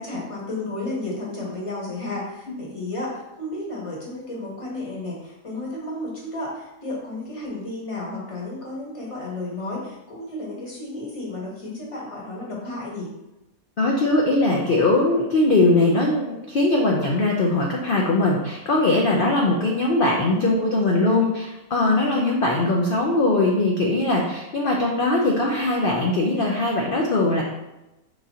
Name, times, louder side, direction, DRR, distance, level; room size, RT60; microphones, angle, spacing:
voice 1, 0.0-13.1 20.3-21.3, left 2 dB, 25° left, -4 dB, 1.0 m, -33 dB
voice 2, 13.8-27.4, left 2 dB, 65° left, -1 dB, 0.5 m, -21 dB
4.9 x 3.7 x 2.8 m, 0.97 s
omnidirectional pair, 1.6 m